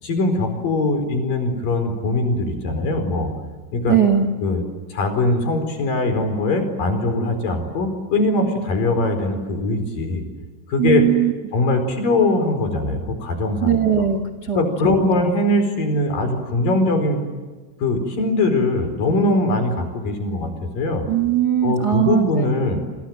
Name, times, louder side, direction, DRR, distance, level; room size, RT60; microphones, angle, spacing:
voice 1, 0.0-3.3 3.7-4.0 4.4-4.6 4.9-10.2 10.7-11.1 11.5-13.8 14.5-17.2 17.8-21.1 21.6-22.8, left 2 dB, 50° left, 7 dB, 6.0 m, -21 dB
voice 2, 3.9-4.3 10.8-11.3 13.6-14.6 21.1-22.3, right 9 dB, 40° right, 8 dB, 1.4 m, -19 dB
28.5 x 26.5 x 7.8 m, 1.3 s
omnidirectional pair, 5.2 m